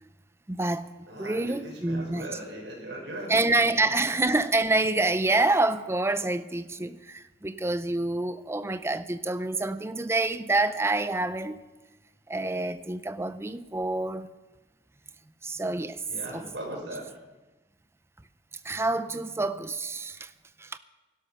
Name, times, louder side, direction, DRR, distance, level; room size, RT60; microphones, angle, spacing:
voice 1, 0.5-0.9 1.2-2.3 3.3-11.6 12.3-14.3 15.4-16.0 16.3-16.4 18.6-20.3 20.6-20.8, right 2 dB, 15° right, 0.5 m, -27 dB
voice 2, 1.1-4.0 16.1-17.1, right 1 dB, 80° right, 6.0 m, -39 dB
17.0 x 12.0 x 5.8 m
head